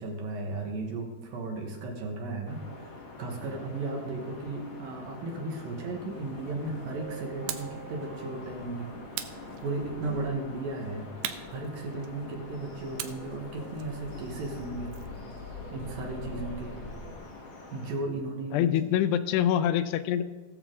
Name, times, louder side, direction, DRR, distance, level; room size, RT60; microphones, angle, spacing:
voice 1, 0.0-8.9 9.6-15.0 15.7-16.8 17.7-18.7, right 2 dB, 65° right, 1 dB, 2.8 m, -35 dB
sound 1, 2.5-18.0, left 3 dB, 55° left, 1.4 m, -46 dB
sound 2, 5.9-17.2, equal, 40° right, 2.0 m, -46 dB
sound 3, 7.5-7.8 9.1-10.1 11.2-12.3 13.0-15.2, right 11 dB, 85° right, 2.8 m, -40 dB
voice 2, 18.5-20.3, left 10 dB, 85° left, 12 dB, 2.6 m, -25 dB
19.0 x 7.1 x 3.7 m, 1.3 s
omnidirectional pair, 4.7 m